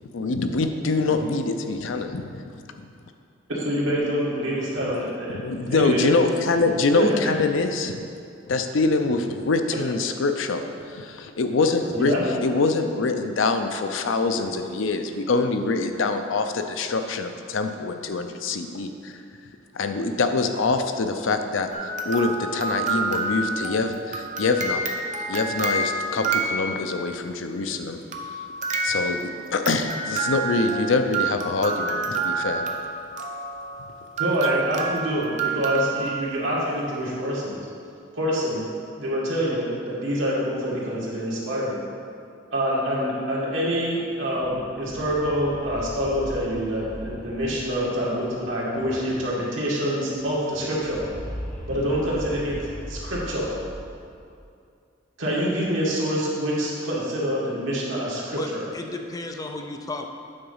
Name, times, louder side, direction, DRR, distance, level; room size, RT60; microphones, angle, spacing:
voice 1, 0.0-2.9 5.3-8.1 8.5-10.6 10.9-12.1 12.4-19.2 19.7-24.8 25.3-28.0 28.8-32.6, left 3 dB, 85° left, 7 dB, 0.5 m, -25 dB
voice 2, 3.5-5.4 5.6-6.1 7.0-7.4 11.9-12.2 34.2-37.6 38.1-38.6 39.0-41.8 42.5-51.1 51.7-52.6 52.9-53.5 55.2-58.6, equal, 85° right, -6 dB, 2.0 m, -26 dB
sound 1, 21.7-27.3 28.1-36.6, right 3 dB, 40° right, 0.7 m, -29 dB
sound 2, 44.1-49.5 49.7-49.8 50.1-54.4, equal, 40° left, 1.2 m, -39 dB
voice 3, 58.4-60.1, left 2 dB, 20° left, 4 dB, 0.4 m, -33 dB
8.9 x 3.9 x 5.5 m, 2.4 s
head